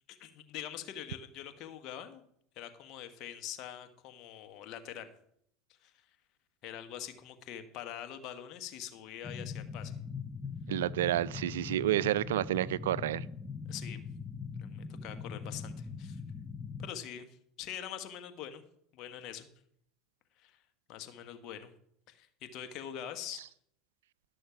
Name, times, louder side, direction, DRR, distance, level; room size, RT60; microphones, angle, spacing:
voice 1, 0.1-2.2 2.5-5.1 5.8-5.9 6.6-9.9 13.7-14.0 14.6-16.2 16.8-17.3 17.6-18.6 18.9-19.5 20.4-20.6 20.9-21.7 22.1-23.5, left 10 dB, 60° left, 1.3 m, -44 dB
sound 1, 9.2-16.9, left 5 dB, 20° left, 0.8 m, -41 dB
voice 2, 10.7-13.3, right 13 dB, 85° right, 0.3 m, -30 dB
12.0 x 6.4 x 5.7 m
hypercardioid pair, 85°, 0 cm